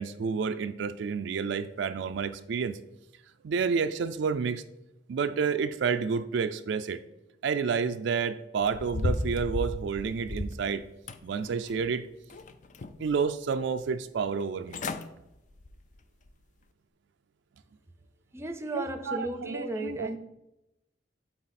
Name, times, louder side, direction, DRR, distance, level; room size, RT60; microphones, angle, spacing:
voice 1, 0.0-2.8 3.4-4.6 5.1-7.0 7.4-10.8 11.2-12.1 13.0-14.8 18.7-20.1, right 5 dB, 70° right, 9 dB, 0.4 m, -30 dB
sound 1, 8.6-10.6 11.1-11.9 12.3-13.1 13.6-13.7 14.4-14.5 14.7-15.1 15.5-15.8 16.3-16.4, left 2 dB, 40° left, 0.4 m, -34 dB
voice 2, 18.3-20.2, right 1 dB, 15° right, 7 dB, 0.6 m, -35 dB
8.7 x 4.0 x 4.1 m, 0.91 s
head